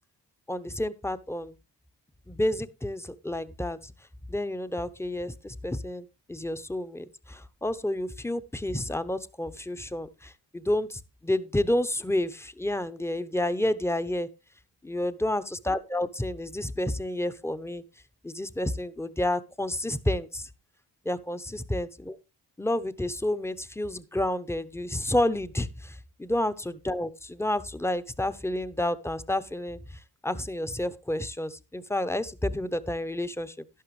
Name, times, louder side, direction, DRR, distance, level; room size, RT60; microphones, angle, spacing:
voice 1, 0.5-1.5 2.3-3.9 4.3-14.3 14.8-17.8 18.2-20.5 21.0-22.2 22.6-33.8, left 1 dB, 5° left, 12 dB, 0.8 m, -30 dB
11.5 x 11.5 x 3.2 m, 0.28 s
cardioid pair, 50°, 43 cm